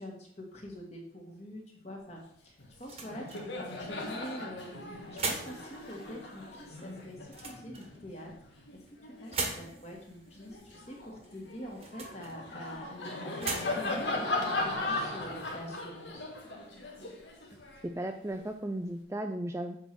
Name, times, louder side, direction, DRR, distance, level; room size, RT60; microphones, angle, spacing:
voice 1, 0.0-3.2 3.6-7.2 7.4-8.5 9.2-12.9 13.2-16.3, equal, 35° left, -1 dB, 2.1 m, -45 dB
sound 1, 2.0-15.5, right 4 dB, 30° right, 1.3 m, -43 dB
Laughter, 2.6-2.8 3.0-9.8 10.3-18.4, left 2 dB, 75° left, 1.9 m, -38 dB
voice 2, 17.8-19.8, right 1 dB, 15° right, 6 dB, 0.4 m, -35 dB
8.0 x 4.7 x 6.1 m, 0.69 s
head